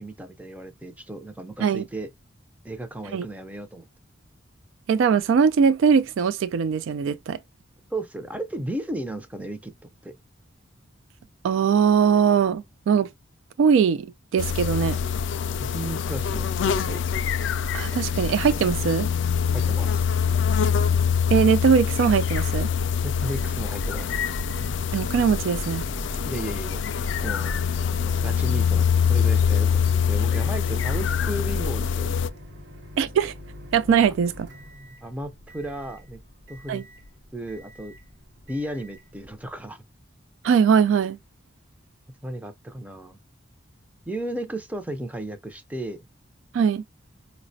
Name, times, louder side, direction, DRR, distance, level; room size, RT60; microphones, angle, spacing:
voice 1, 0.0-2.1 2.6-3.9 7.9-9.7 10.0-10.1 15.6-17.0 19.5-20.1 23.0-24.2 26.2-26.8 27.2-27.5 27.8-32.1 35.0-36.2 36.5-36.8 37.3-38.0 38.5-39.8 42.2-43.2 44.1-46.0, right 1 dB, 10° right, 0.4 m, -34 dB
voice 2, 4.9-7.4 11.4-13.1 13.6-14.1 14.3-15.0 17.7-19.1 21.3-22.7 24.9-25.8 33.0-33.3 33.7-34.5 36.7-36.8 40.4-41.2 46.5-46.8, right 6 dB, 80° right, 0.3 m, -21 dB
sound 1, 14.4-32.3, left 7 dB, 70° left, 0.3 m, -24 dB
Microwave oven, 24.3-39.6, left 1 dB, 60° right, 0.8 m, -46 dB
4.8 x 2.1 x 2.6 m
head